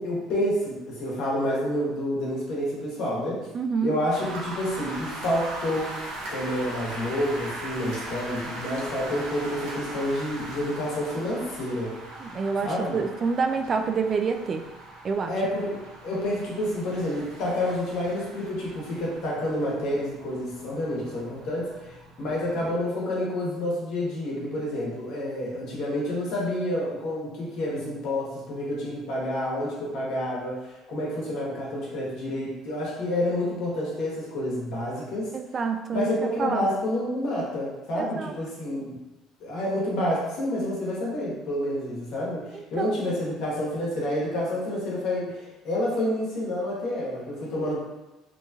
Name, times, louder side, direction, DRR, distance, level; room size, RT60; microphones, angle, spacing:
voice 1, 0.0-3.5 3.8-6.0 6.3-12.0 12.6-13.0 15.3-21.9 22.2-35.3 35.9-39.0 39.4-47.8, left 1 dB, 70° left, -5 dB, 1.0 m, -29 dB
voice 2, 3.5-3.9 12.2-14.6 15.0-15.3 35.3-36.1 36.4-36.7 38.0-38.3 42.8-43.0, right 5 dB, 40° right, 6 dB, 0.3 m, -27 dB
sound 1, 4.1-22.7, right 2 dB, 85° right, 0.7 m, -40 dB
2.9 x 2.2 x 2.7 m, 1.0 s
supercardioid pair, 75°, 0 cm